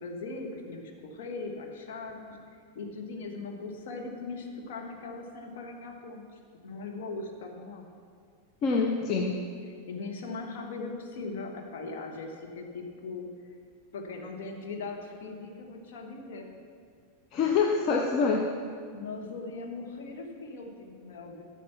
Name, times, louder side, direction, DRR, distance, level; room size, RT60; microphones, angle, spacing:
voice 1, 0.0-2.4 2.7-7.8 9.9-13.3 13.9-16.5 18.9-21.4, left 3 dB, 55° left, 2 dB, 1.5 m, -39 dB
voice 2, 8.6-9.4 17.3-18.5, left 4 dB, 35° left, 2 dB, 0.8 m, -25 dB
12.5 x 7.1 x 5.8 m, 2.2 s
figure-of-eight pair, 90°, 0 cm